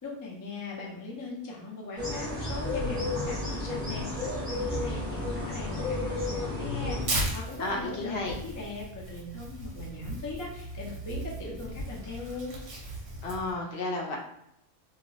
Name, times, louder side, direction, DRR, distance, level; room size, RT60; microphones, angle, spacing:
voice 1, 0.0-12.6, left 3 dB, 30° left, -3 dB, 0.3 m, -40 dB
sound 1, 2.0-7.0, left 2 dB, 5° right, 0.9 m, -32 dB
Tearing, 7.0-13.5, right 1 dB, 65° right, 0.9 m, -37 dB
voice 2, 7.6-8.4 13.2-14.2, left 2 dB, 65° left, 0 dB, 0.7 m, -32 dB
2.4 x 2.0 x 3.7 m, 0.78 s
omnidirectional pair, 1.3 m